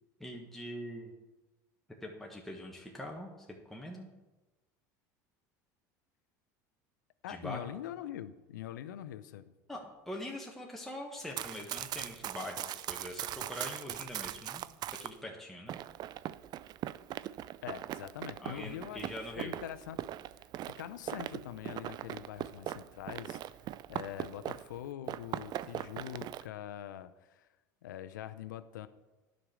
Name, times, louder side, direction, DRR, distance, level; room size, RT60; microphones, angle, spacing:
voice 1, 0.2-1.1 2.0-4.1 7.3-7.7 9.7-14.6 14.9-15.8 18.4-19.5, left 1 dB, 5° left, -1 dB, 1.3 m, -43 dB
voice 2, 7.2-9.4 17.6-20.0 20.4-23.6 23.9-27.5 27.8-28.9, left 11 dB, 85° left, 12 dB, 0.5 m, -44 dB
Run, 11.2-15.1 15.7-24.8 25.1-26.4, right 12 dB, 45° right, 0.4 m, -40 dB
9.9 x 5.2 x 6.1 m, 1.1 s
hypercardioid pair, 90°, 10 cm